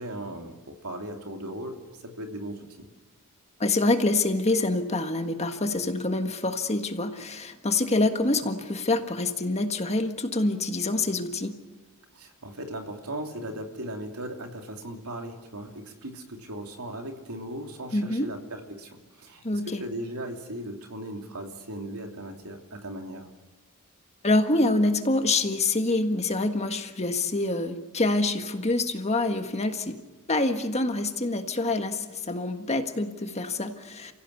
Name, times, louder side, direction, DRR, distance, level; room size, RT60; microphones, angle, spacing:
voice 1, 0.0-2.9 12.1-23.3, right 1 dB, 85° right, 3 dB, 3.0 m, -38 dB
voice 2, 3.6-11.6 17.9-18.3 19.4-19.8 24.2-30.0 30.3-34.1, left 2 dB, 30° left, 7 dB, 1.6 m, -26 dB
30.0 x 16.0 x 8.4 m, 1.1 s
head